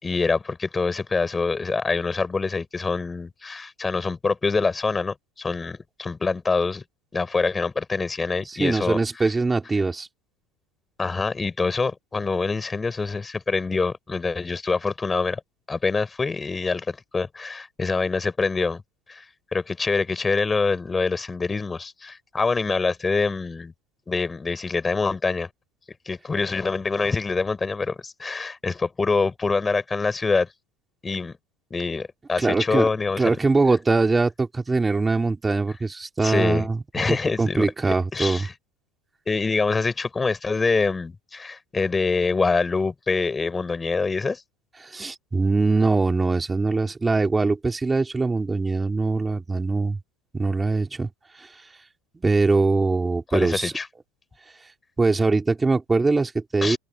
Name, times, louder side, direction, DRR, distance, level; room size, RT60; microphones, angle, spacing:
voice 1, 0.0-6.8 7.1-9.0 11.0-15.4 15.7-18.8 19.1-19.2 19.5-23.7 24.1-25.5 26.1-30.5 31.0-31.3 31.7-33.4 36.2-36.7 36.9-37.7 38.1-38.5 39.3-44.4 53.3-53.9 56.6-56.8, left 4 dB, 15° left, 5.1 m, -25 dB
voice 2, 8.5-10.1 32.4-32.9 33.2-38.5 44.8-50.0 50.3-51.1 51.3-51.7 52.1-53.7 55.0-56.8, right 3 dB, 10° right, 3.4 m, -22 dB
open air
supercardioid pair, 140°, 0 cm